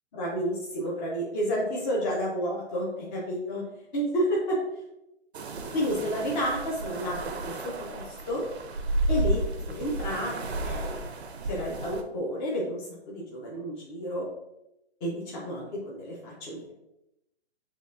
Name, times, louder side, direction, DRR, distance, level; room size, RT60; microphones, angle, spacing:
voice 1, 0.1-3.6 3.9-4.6 5.7-7.5 7.8-8.5 9.1-9.4 9.7-11.0 11.5-14.3 15.0-16.7, equal, 15° left, -4 dB, 0.6 m, -30 dB
sound 1, 5.3-12.0, right 2 dB, 70° right, 0.7 m, -32 dB
6.3 x 2.4 x 2.4 m, 0.88 s
figure-of-eight pair, 130°, 34 cm